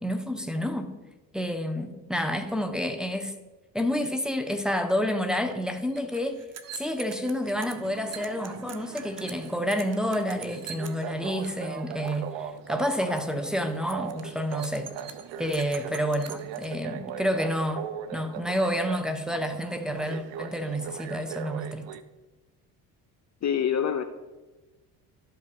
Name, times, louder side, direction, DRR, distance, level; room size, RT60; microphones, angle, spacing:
voice 1, 0.0-0.9 1.3-3.3 3.7-6.4 6.7-14.9 15.4-21.9, equal, ahead, 1.1 m, -29 dB
sound 1, 5.5-5.6 5.8-11.5 11.8-12.3 12.6-12.9 13.2-13.4 13.8-16.7, right 7 dB, 35° right, 0.9 m, -44 dB
sound 2, 7.5-22.0, right 8 dB, 75° right, 0.7 m, -40 dB
voice 2, 23.4-24.0, left 8 dB, 40° left, 0.8 m, -25 dB
12.0 x 5.4 x 5.4 m
hypercardioid pair, 65°, 44 cm